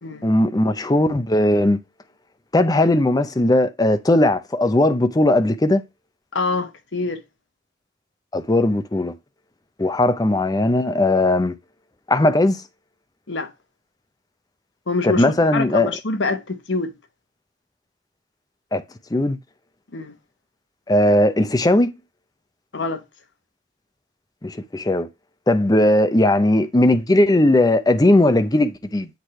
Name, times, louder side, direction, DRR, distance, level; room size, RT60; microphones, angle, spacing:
voice 1, 0.2-1.8 2.5-5.8 8.3-9.1 9.8-11.6 12.1-12.6 15.0-15.9 18.7-18.8 19.1-19.4 20.9-21.9 24.4-25.1 25.5-29.1, left 1 dB, 20° left, 0.6 m, -18 dB
voice 2, 6.3-7.2 13.3-13.5 14.9-15.3 15.5-16.9 19.9-20.1 22.7-23.0, left 3 dB, 85° left, 1.0 m, -25 dB
8.2 x 3.3 x 4.2 m
head